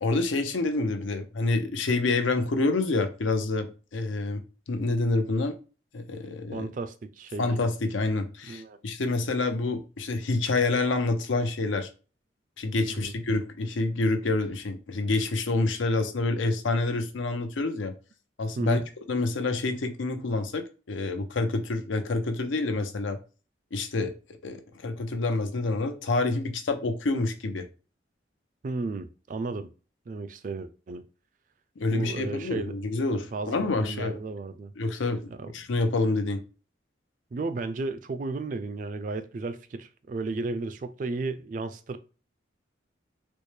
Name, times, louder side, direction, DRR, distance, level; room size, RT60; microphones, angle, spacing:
voice 1, 0.0-4.4 4.7-5.6 5.9-6.7 7.4-11.9 12.6-17.9 18.4-18.8 19.1-20.6 20.9-23.2 23.7-24.1 24.4-27.6 31.8-34.2 34.8-36.4, left 3 dB, 90° left, 0.6 m, -27 dB
voice 2, 6.5-7.5 8.5-8.8 12.8-13.1 18.6-18.8 28.6-29.7 30.1-31.0 31.9-32.7 33.3-33.5 33.8-34.7 35.4-35.5 37.3-42.0, right 3 dB, 45° right, 0.3 m, -33 dB
4.2 x 2.1 x 3.2 m
head